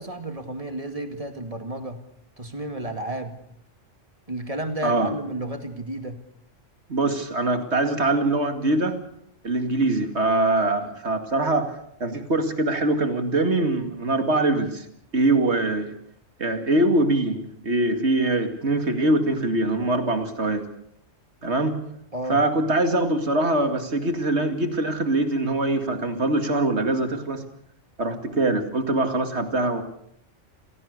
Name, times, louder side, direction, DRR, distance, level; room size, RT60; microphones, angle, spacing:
voice 1, 0.0-2.0 2.4-3.4 4.3-6.2 22.1-22.4, right 1 dB, 30° right, 6 dB, 2.3 m, -32 dB
voice 2, 6.9-9.0 9.4-11.7 12.0-14.9 15.1-15.9 16.4-20.7 21.4-21.8 22.3-27.4 28.0-29.8, right 2 dB, 60° right, 7 dB, 2.5 m, -23 dB
28.5 x 17.0 x 6.7 m, 0.73 s
omnidirectional pair, 1.3 m